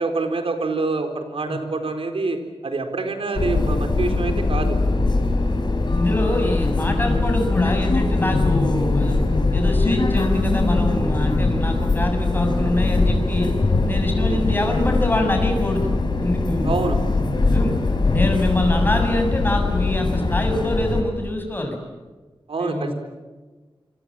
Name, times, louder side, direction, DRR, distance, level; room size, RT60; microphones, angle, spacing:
voice 1, 0.0-4.8 14.1-14.4 16.6-17.0 22.5-22.9, right 3 dB, 75° right, 6 dB, 4.1 m, -26 dB
sound 1, 3.3-21.0, left 3 dB, 50° left, 4.5 m, -21 dB
voice 2, 5.9-9.2 9.5-13.5 13.9-15.9 16.2-16.9 17.3-17.7 18.1-21.8 22.6-22.9, left 1 dB, 20° left, 4 dB, 7.1 m, -25 dB
sound 2, 8.8-21.2, equal, 20° right, 6.7 m, -38 dB
27.5 x 25.5 x 7.6 m, 1.3 s
wide cardioid pair, 115°, 10 cm